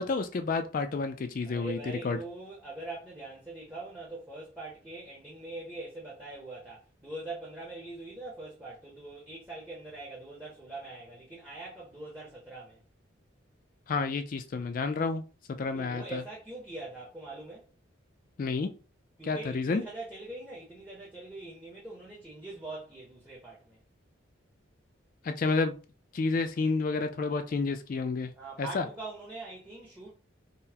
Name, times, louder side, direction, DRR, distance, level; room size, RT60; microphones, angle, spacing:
voice 1, 0.0-1.8 2.0-2.2 13.9-15.2 15.6-16.2 18.4-18.7 19.3-19.8 25.2-25.8 26.1-28.3 28.6-28.8, left 4 dB, 40° left, 0.3 m, -30 dB
voice 2, 1.4-12.8 15.7-17.7 19.2-23.8 28.3-30.1, right 2 dB, 10° right, 0.6 m, -43 dB
3.8 x 2.1 x 2.7 m
head